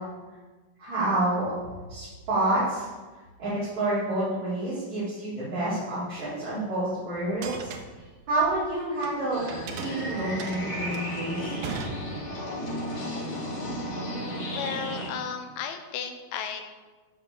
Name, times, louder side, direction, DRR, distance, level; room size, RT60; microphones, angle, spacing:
voice 1, 0.8-1.5 1.9-2.9 3.4-9.4 9.8-11.6, right 2 dB, 45° right, -13 dB, 5.4 m, -28 dB
sound 1, 7.3-9.1 9.5-12.6, right 5 dB, 75° right, 2.7 m, -39 dB
sound 2, 9.3-15.1, equal, 55° left, 4.9 m, -34 dB
voice 2, 14.5-16.6, left 7 dB, 80° left, 6 dB, 3.0 m, -34 dB
13.5 x 5.9 x 7.0 m, 1.3 s
omnidirectional pair, 4.4 m